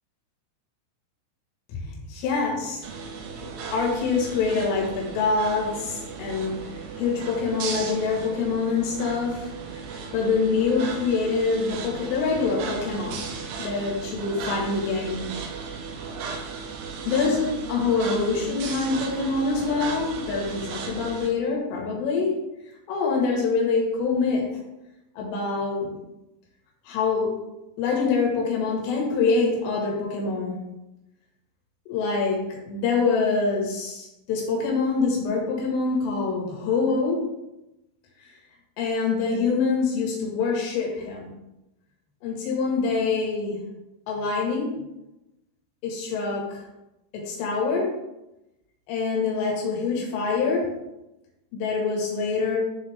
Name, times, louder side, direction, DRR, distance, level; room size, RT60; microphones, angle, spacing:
voice 1, 1.7-2.8 3.7-6.6 7.0-9.9 10.1-13.3 13.6-15.3 17.1-22.3 22.9-24.5 25.2-26.0 26.9-27.3 27.8-30.6 31.9-37.2 38.2-38.3 38.8-41.3 42.2-43.6 44.1-44.7 45.8-46.6 47.1-47.9 48.9-50.7 51.5-52.6, left 4 dB, 75° left, -2 dB, 4.3 m, -25 dB
sound 1, 2.8-21.3, right 5 dB, 80° right, 2.9 m, -36 dB
12.5 x 4.2 x 3.6 m, 0.95 s
omnidirectional pair, 5.9 m